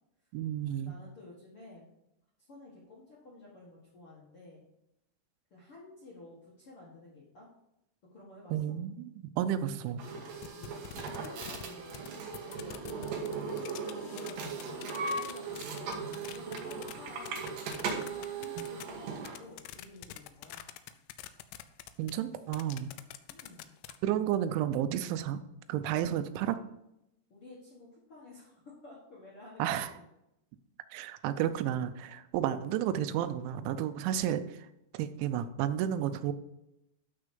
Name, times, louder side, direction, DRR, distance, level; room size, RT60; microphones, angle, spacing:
voice 1, 0.3-0.9 8.5-10.0 18.6-18.8 22.0-22.9 24.0-25.4 25.7-26.6 29.6-29.9 30.9-34.7 34.9-36.3, right 10 dB, 85° right, 11 dB, 3.0 m, -32 dB
voice 2, 0.8-1.9 2.5-4.6 5.5-7.5 8.1-8.5 10.5-12.8 13.2-16.0 16.3-17.4 17.9-20.7 23.3-23.7 27.3-30.0 32.3-32.5, left 2 dB, 55° left, -6 dB, 1.5 m, -52 dB
sound 1, 10.0-19.4, right 4 dB, 65° right, 2.5 m, -38 dB
sound 2, 10.4-12.1 12.3-16.9 17.3-24.0, left 14 dB, 85° left, 3.0 m, -46 dB
12.0 x 4.5 x 5.3 m, 0.85 s
omnidirectional pair, 5.3 m